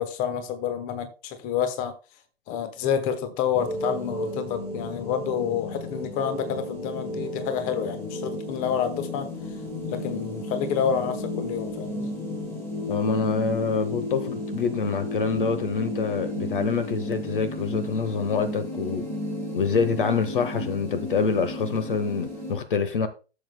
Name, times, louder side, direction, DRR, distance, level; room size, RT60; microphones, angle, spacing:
voice 1, 0.0-1.9 2.5-9.3 9.9-12.1, left 8 dB, 25° left, 1.1 m, -28 dB
sound 1, 3.5-22.5, left 1 dB, 5° left, 3.8 m, -33 dB
voice 2, 12.9-19.1 19.5-23.1, left 5 dB, 60° left, 1.0 m, -26 dB
13.0 x 7.2 x 2.2 m
figure-of-eight pair, 110°, 31 cm